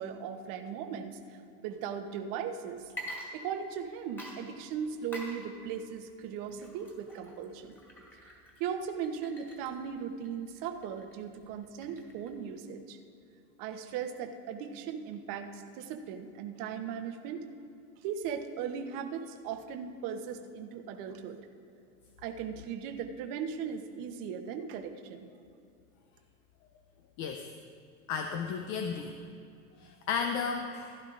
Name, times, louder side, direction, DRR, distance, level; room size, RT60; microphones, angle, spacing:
voice 1, 0.0-2.9 3.3-7.8 8.2-8.3 8.6-13.0 13.6-17.4 18.0-21.4 22.2-25.3, right 7 dB, 45° right, 6 dB, 1.0 m, -38 dB
Water / Liquid, 2.8-3.9 4.2-12.4, equal, 5° left, 2.2 m, -47 dB
voice 2, 28.1-29.1 29.8-30.9, left 6 dB, 40° left, 5 dB, 0.7 m, -33 dB
15.5 x 11.0 x 2.5 m, 2.5 s
hypercardioid pair, 110°, 45 cm